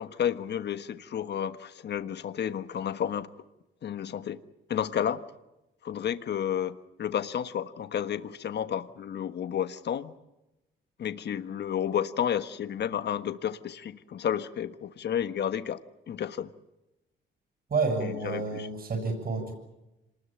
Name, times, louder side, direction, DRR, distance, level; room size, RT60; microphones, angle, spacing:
voice 1, 0.0-3.3 3.8-4.4 4.7-5.2 5.8-10.1 11.0-15.8 16.1-16.5 18.0-18.7, left 9 dB, 60° left, 12 dB, 1.4 m, -31 dB
voice 2, 17.7-19.5, right 4 dB, 50° right, 5 dB, 7.2 m, -29 dB
26.5 x 20.5 x 9.0 m, 0.96 s
cardioid pair, 90°, 20 cm